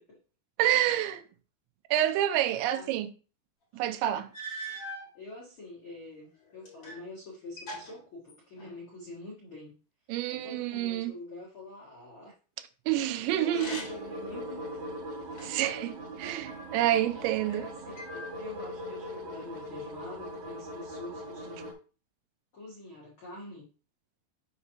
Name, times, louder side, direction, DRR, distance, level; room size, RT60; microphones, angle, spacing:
voice 1, 0.6-1.2 1.9-3.1 3.7-4.3 10.1-11.1 12.9-13.8 15.4-17.7, right 12 dB, 85° right, 2.9 m, -28 dB
voice 2, 2.5-3.0 5.1-9.7 10.3-12.3 12.9-14.6 14.9-15.0 17.2-21.7 22.5-23.7, left 2 dB, 80° left, 1.1 m, -46 dB
sound 1, 3.7-3.8 4.3-5.1 5.9-7.1 7.3-8.9 13.4-14.2 14.7-15.7 16.5-17.3 17.9-18.7, equal, 45° left, 1.7 m, -43 dB
sound 2, 13.4-21.7, equal, 60° right, 1.7 m, -41 dB
6.8 x 2.9 x 5.5 m
omnidirectional pair, 5.2 m